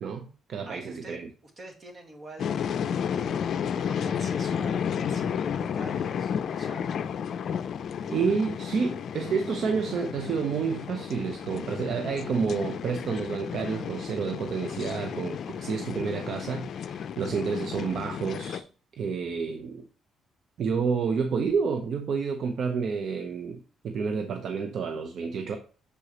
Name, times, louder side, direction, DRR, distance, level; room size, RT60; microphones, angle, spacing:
voice 1, 0.0-1.3 8.1-18.6 19.0-19.8 20.6-25.6, right 5 dB, 65° right, 0.6 m, -29 dB
voice 2, 0.7-1.2 1.6-6.9 8.3-8.4, right 1 dB, 45° right, 1.9 m, -45 dB
sound 1, 2.4-18.6, left 8 dB, 65° left, 0.4 m, -32 dB
6.7 x 4.9 x 2.9 m
cardioid pair, 90°, 0 cm